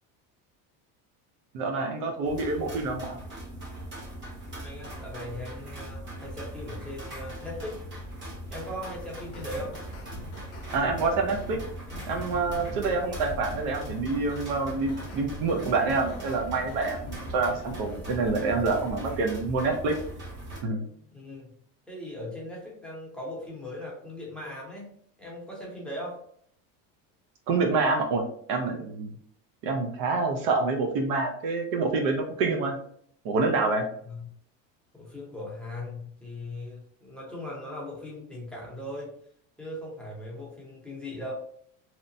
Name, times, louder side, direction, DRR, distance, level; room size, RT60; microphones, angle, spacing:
voice 1, 1.5-3.2 10.7-11.6 12.1-20.0 20.6-20.8 27.5-29.1 29.6-32.8 33.2-33.9, right 3 dB, 65° right, 3 dB, 0.6 m, -27 dB
sound 1, 2.2-20.6, right 1 dB, 30° right, 0.9 m, -40 dB
voice 2, 4.6-7.8 8.5-9.8 20.9-21.5 21.9-24.9 25.2-26.2 34.0-34.3 34.9-39.1 39.6-41.3, left 1 dB, 5° left, -5 dB, 0.7 m, -39 dB
sound 2, 9.2-19.3, equal, 40° left, 0.7 m, -42 dB
2.9 x 2.1 x 2.6 m, 0.63 s
cardioid pair, 135°, 38 cm